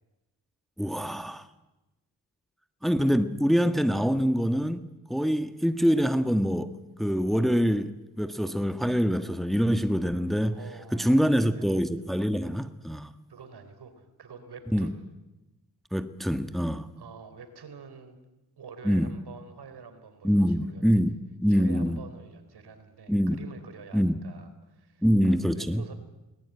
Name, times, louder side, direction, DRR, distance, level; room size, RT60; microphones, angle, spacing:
voice 1, 0.8-1.5 2.8-6.7 7.0-10.6 10.9-13.1 14.7-14.9 15.9-16.9 18.8-19.1 20.2-22.0 23.1-23.4 23.9-24.1 25.0-25.8, equal, ahead, 1.5 m, -25 dB
voice 2, 10.5-11.7 13.3-15.0 17.0-18.2 18.6-20.9 21.5-25.9, right 5 dB, 70° right, 3.8 m, -47 dB
21.0 x 19.5 x 9.2 m
supercardioid pair, 50°, 41 cm